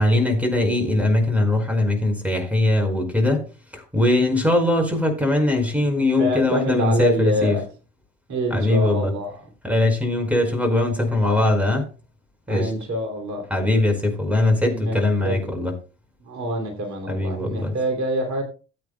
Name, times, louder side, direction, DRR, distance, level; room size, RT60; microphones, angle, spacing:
voice 1, 0.0-3.4 3.7-7.6 8.5-9.1 9.6-11.9 12.5-12.7 13.5-15.7 17.1-17.7, left 2 dB, 5° right, 4.7 m, -21 dB
voice 2, 6.2-7.6 8.3-9.4 12.5-13.5 14.7-15.5 16.2-18.4, right 1 dB, 50° right, 2.7 m, -26 dB
19.0 x 8.5 x 2.2 m
figure-of-eight pair, 60°, 37 cm